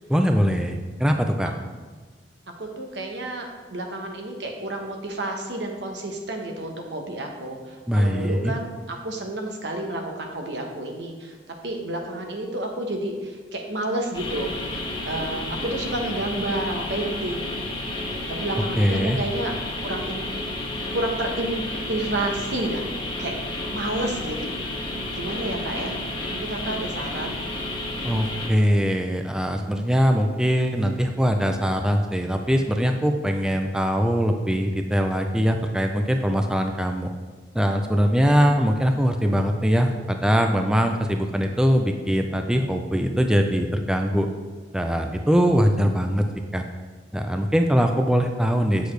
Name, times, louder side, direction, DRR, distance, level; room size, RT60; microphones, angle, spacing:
voice 1, 0.1-1.5 7.9-8.5 18.6-19.2 28.0-37.1 37.5-44.3 44.7-46.2 46.5-46.6 47.1-48.9, equal, 5° right, 4 dB, 0.4 m, -22 dB
voice 2, 2.6-11.3 11.6-17.6 18.1-20.3 20.9-23.3 23.7-24.7 25.2-26.0 26.3-27.4, right 1 dB, 75° right, 2 dB, 1.1 m, -30 dB
sound 1, 14.1-28.5, left 1 dB, 25° left, 1.3 m, -31 dB
8.1 x 6.5 x 3.2 m, 1.4 s
head